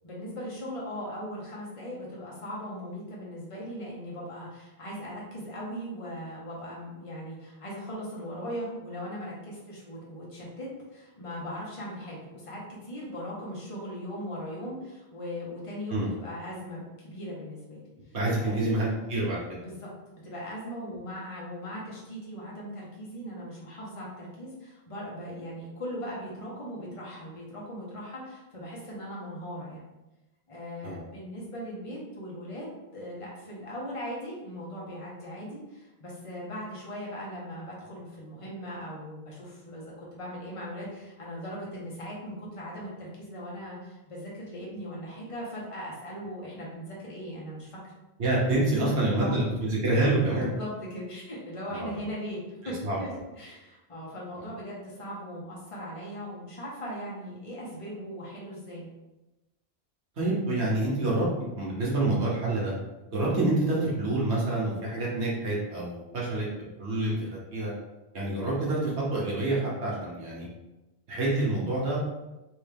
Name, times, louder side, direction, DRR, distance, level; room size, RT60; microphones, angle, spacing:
voice 1, 0.0-17.8 18.4-18.6 19.6-29.9 30.5-32.7 32.9-47.9 48.8-49.4 50.3-58.9, equal, 30° left, -5 dB, 1.1 m, -39 dB
voice 2, 18.1-19.6 30.8-31.0 48.2-50.5 51.7-52.0 52.8-53.0 60.2-61.3 61.6-62.7 63.1-67.7 68.1-70.5 71.1-72.0, right 2 dB, 80° right, -5 dB, 1.3 m, -27 dB
3.3 x 3.3 x 3.4 m, 1.0 s
omnidirectional pair, 1.1 m